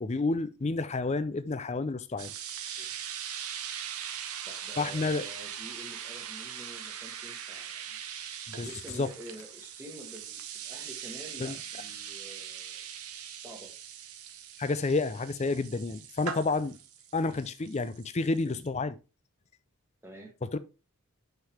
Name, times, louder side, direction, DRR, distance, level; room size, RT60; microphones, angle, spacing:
voice 1, 0.0-2.3 4.8-5.2 8.5-8.7 9.0-9.1 11.4-11.6 14.6-16.8 17.1-19.0 20.4-20.6, left 3 dB, 30° left, 0.4 m, -30 dB
sound 1, 2.2-18.7, right 9 dB, 85° right, 0.9 m, -41 dB
voice 2, 2.8-3.1 4.4-8.3 8.6-12.8 13.4-13.7 20.0-20.3, equal, 10° right, 1.2 m, -48 dB
5.7 x 5.7 x 3.4 m
head